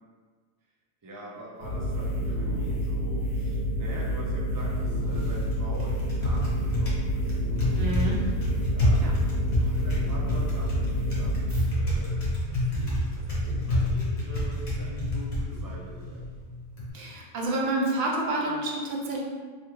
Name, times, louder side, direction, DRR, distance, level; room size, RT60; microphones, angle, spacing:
voice 1, 1.0-7.4 7.8-16.3, equal, 30° right, -5 dB, 0.4 m, -44 dB
sound 1, 1.6-11.6, equal, 85° right, 1.3 m, -29 dB
Typing, 4.5-16.9, left 1 dB, 75° left, 1.3 m, -29 dB
voice 2, 7.8-8.2 9.0-9.1 16.9-19.2, right 2 dB, 65° right, -1 dB, 0.7 m, -28 dB
3.2 x 2.3 x 3.1 m, 1.5 s
omnidirectional pair, 1.3 m